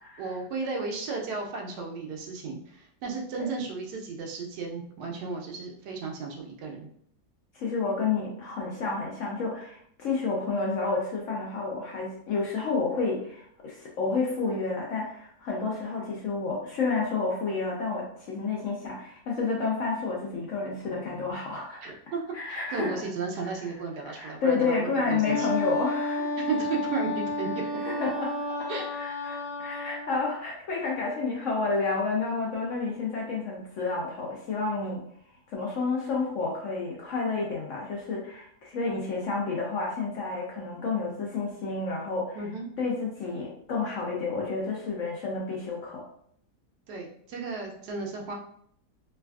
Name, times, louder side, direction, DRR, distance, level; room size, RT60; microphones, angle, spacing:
voice 1, 0.2-6.9 21.8-22.2 22.5-25.5 26.4-27.5 28.7-28.9 42.3-42.6 46.9-48.3, right 4 dB, 85° right, 0 dB, 1.2 m, -34 dB
voice 2, 7.5-21.8 22.3-23.0 24.0-26.3 27.8-28.3 28.6-35.0 35.5-42.4 42.8-46.0, left 4 dB, 65° left, -2 dB, 0.8 m, -30 dB
Wind instrument woodwind instrument, 25.2-30.1, left 2 dB, 85° left, 1.2 m, -31 dB
3.3 x 2.3 x 2.3 m, 0.66 s
omnidirectional pair, 1.7 m